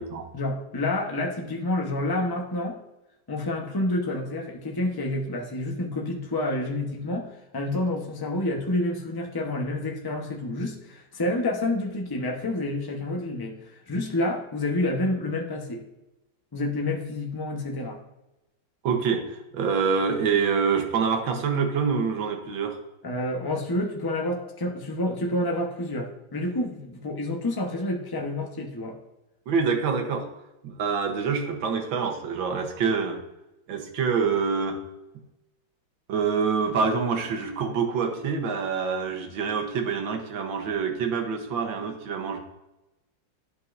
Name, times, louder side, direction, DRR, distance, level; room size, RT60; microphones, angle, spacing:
voice 1, 0.3-2.8 3.3-15.8 16.5-18.0 23.0-29.0, left 1 dB, 20° left, 1 dB, 0.7 m, -29 dB
voice 2, 18.8-22.8 29.5-30.3 30.6-33.2 33.7-34.8 36.1-42.4, right 5 dB, 85° right, 4 dB, 1.8 m, -26 dB
11.0 x 5.5 x 2.6 m, 0.95 s
omnidirectional pair, 2.1 m